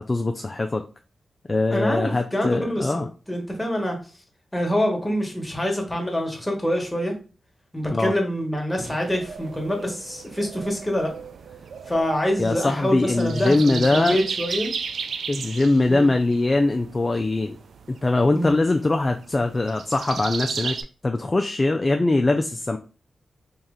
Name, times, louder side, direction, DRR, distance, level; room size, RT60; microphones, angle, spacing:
voice 1, 0.1-0.8 1.5-3.1 7.9-8.1 12.4-14.2 15.3-17.6 17.9-20.8 21.0-22.8, left 2 dB, 30° left, 5 dB, 0.3 m, -22 dB
voice 2, 1.7-3.0 3.3-4.0 4.5-7.1 7.7-11.1 11.9-14.7 15.9-16.1 18.3-18.5, equal, 10° left, 1 dB, 1.2 m, -25 dB
sound 1, 8.8-20.8, right 6 dB, 80° right, 0.3 m, -35 dB
3.1 x 2.9 x 3.7 m, 0.35 s
cardioid pair, 80°, 0 cm